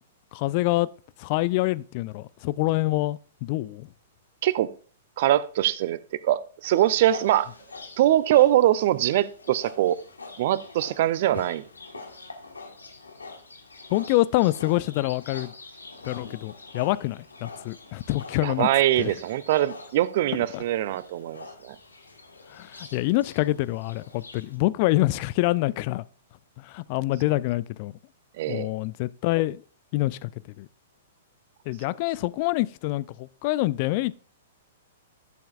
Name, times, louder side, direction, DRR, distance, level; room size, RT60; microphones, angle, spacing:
voice 1, 0.3-0.9 1.2-3.9 13.9-15.5 16.0-18.7 19.0-19.2 20.5-20.6 22.5-26.0 26.6-27.9 28.5-29.6 29.9-30.3 30.6-30.7 31.7-34.2, left 18 dB, 45° left, 0.3 m, -26 dB
voice 2, 5.2-6.0 6.2-7.5 8.0-10.0 10.4-11.6 18.4-21.8 28.4-28.7, right 13 dB, 50° right, 0.5 m, -22 dB
Livestock farm animals working animals, 6.6-24.6, left 3 dB, 80° left, 1.5 m, -45 dB
12.0 x 7.0 x 2.4 m
figure-of-eight pair, 110°, 0 cm